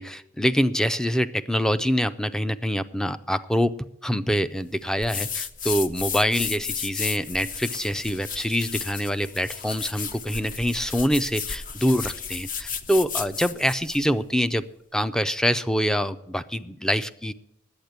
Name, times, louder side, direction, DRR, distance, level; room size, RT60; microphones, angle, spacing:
voice 1, 0.0-14.7 14.9-17.3, equal, 5° left, 13 dB, 0.4 m, -25 dB
sound 1, 5.0-14.1, left 6 dB, 45° left, 0.7 m, -33 dB
10.5 x 8.5 x 8.0 m, 0.79 s
head